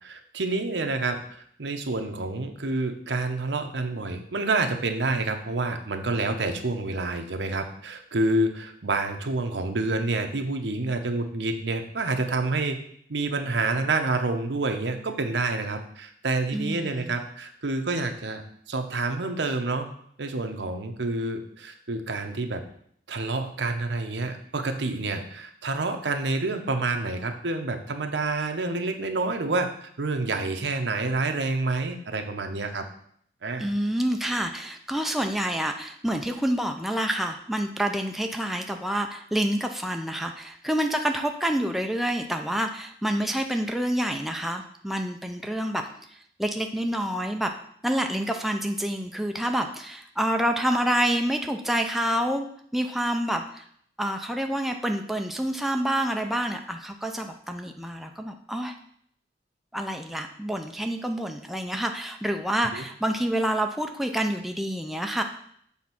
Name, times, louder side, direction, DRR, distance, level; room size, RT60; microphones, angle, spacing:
voice 1, 0.0-1.2 1.6-12.8 13.1-19.9 20.2-22.6 23.1-32.8 33.4-33.7 62.7-62.8, right 3 dB, 80° right, 6 dB, 0.9 m, -28 dB
voice 2, 16.5-17.2 33.6-45.8 46.1-47.5 47.8-52.5 52.7-53.6 54.0-58.7 59.7-65.2, right 1 dB, ahead, 3 dB, 0.4 m, -28 dB
7.2 x 3.6 x 5.9 m, 0.65 s
head